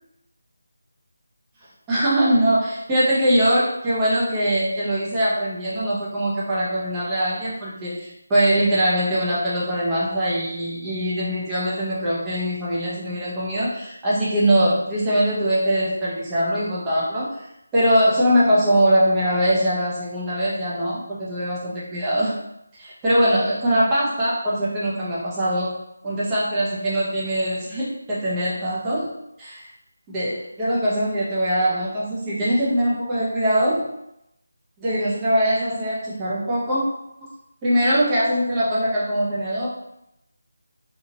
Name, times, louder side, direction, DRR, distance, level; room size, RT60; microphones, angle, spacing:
voice 1, 1.9-17.4 17.7-22.4 22.8-25.8 26.0-29.1 29.4-29.6 30.1-33.9 34.8-36.9 37.2-37.3 37.6-39.7, equal, 15° right, -8 dB, 0.8 m, -22 dB
2.9 x 2.4 x 2.8 m, 0.82 s
figure-of-eight pair, 160°, 0 cm